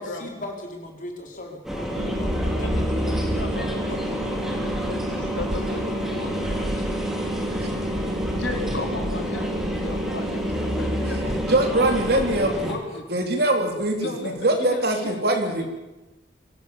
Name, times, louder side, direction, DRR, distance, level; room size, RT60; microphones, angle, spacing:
voice 1, 0.0-2.8, left 1 dB, 45° left, 2 dB, 4.4 m, -38 dB
sound 1, 1.6-12.7, equal, ahead, 3.1 m, -28 dB
sound 2, 2.0-12.0, equal, 80° right, 1.7 m, -32 dB
voice 2, 2.6-4.2 4.5-6.3 6.7-6.9 7.6-7.8 8.3-11.5 12.1-13.1 14.0-15.7, left 2 dB, 85° left, 2 dB, 4.3 m, -35 dB
voice 3, 11.5-12.8 13.1-15.7, right 1 dB, 60° right, 4 dB, 3.6 m, -22 dB
23.5 x 17.0 x 7.3 m, 1.1 s
head